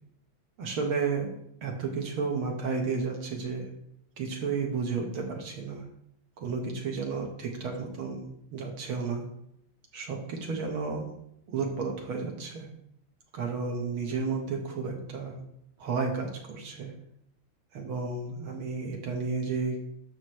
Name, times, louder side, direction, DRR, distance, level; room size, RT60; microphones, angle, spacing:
voice 1, 0.6-1.3 1.6-3.7 4.2-5.8 6.4-9.2 9.9-11.1 11.5-12.7 13.3-15.4 15.8-16.9 17.7-19.8, right 4 dB, 75° right, 1 dB, 2.4 m, -32 dB
12.0 x 6.3 x 3.3 m, 0.75 s
omnidirectional pair, 2.3 m